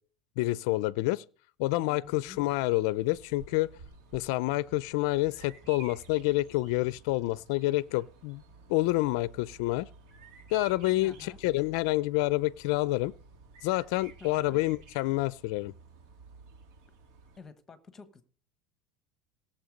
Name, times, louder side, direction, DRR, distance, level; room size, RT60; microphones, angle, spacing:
voice 1, 0.4-1.2 1.6-3.7 4.1-8.4 8.7-9.9 10.5-13.1 13.6-15.7, left 19 dB, 55° left, 0.5 m, -28 dB
voice 2, 1.8-2.7 5.6-5.7 10.9-11.4 14.2-14.7 17.4-18.2, left 5 dB, 15° left, 1.3 m, -50 dB
Bird vocalization bird call bird song, 2.2-17.4, right 4 dB, 60° right, 2.9 m, -53 dB
17.5 x 7.3 x 5.2 m
supercardioid pair, 165°, 3 cm